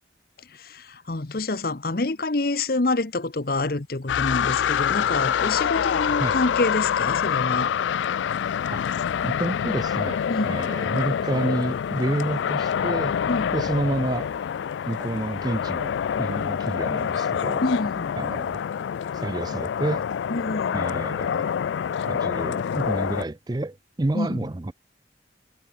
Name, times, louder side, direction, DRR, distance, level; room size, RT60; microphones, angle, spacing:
voice 1, 0.4-7.7 10.3-10.6 13.3-13.6 17.6-18.1 20.3-20.9 24.1-24.5, left 2 dB, 55° left, 1.0 m, -27 dB
sound 1, 4.1-23.3, left 8 dB, 80° left, 0.3 m, -26 dB
voice 2, 9.2-13.1 13.5-14.3 14.9-17.6 18.2-18.6 19.1-20.0 20.7-21.5 22.1-24.7, right 2 dB, 20° right, 0.5 m, -29 dB
head